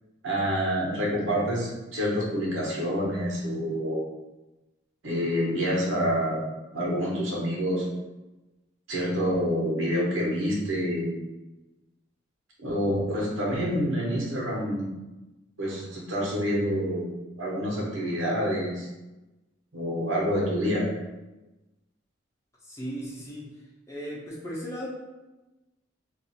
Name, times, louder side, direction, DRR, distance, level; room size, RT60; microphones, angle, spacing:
voice 1, 0.2-4.0 5.0-6.4 6.7-7.8 8.9-11.1 12.6-14.9 15.6-17.1 17.4-18.9 19.7-20.8, equal, 90° right, -4 dB, 1.1 m, -27 dB
voice 2, 22.6-23.5 23.9-24.9, equal, 15° left, -6 dB, 0.8 m, -36 dB
2.6 x 2.4 x 4.1 m, 1.1 s
head